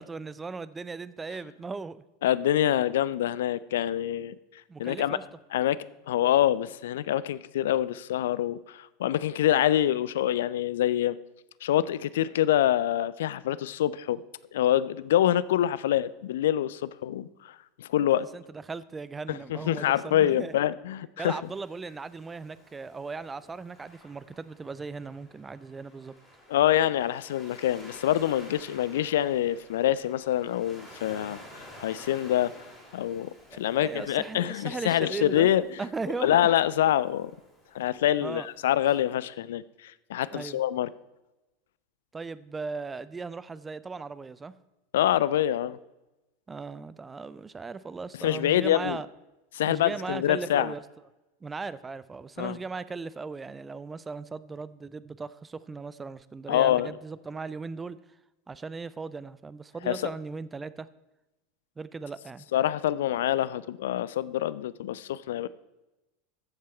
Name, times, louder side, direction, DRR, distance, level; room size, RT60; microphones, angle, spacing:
voice 1, 0.0-2.0 4.7-5.2 18.3-20.6 21.2-26.1 33.5-35.5 35.8-36.5 38.2-38.5 40.3-40.6 42.1-44.5 46.5-49.1 49.7-50.8 51.4-58.0 58.5-60.9 61.8-62.5, right 4 dB, 15° right, 17 dB, 0.4 m, -37 dB
voice 2, 2.2-5.2 5.5-5.8 6.1-11.2 11.6-14.2 14.5-18.3 19.3-21.4 26.5-32.5 32.9-35.6 36.2-37.3 37.7-40.9 44.9-45.8 48.2-49.0 49.5-50.7 52.4-52.6 56.5-56.9 59.9-60.1 62.5-65.5, left 12 dB, 60° left, 18 dB, 0.4 m, -26 dB
Waves surf, 21.4-39.2, equal, 5° left, 4.6 m, -52 dB
14.0 x 7.4 x 4.4 m, 1.0 s
figure-of-eight pair, 80°, 0 cm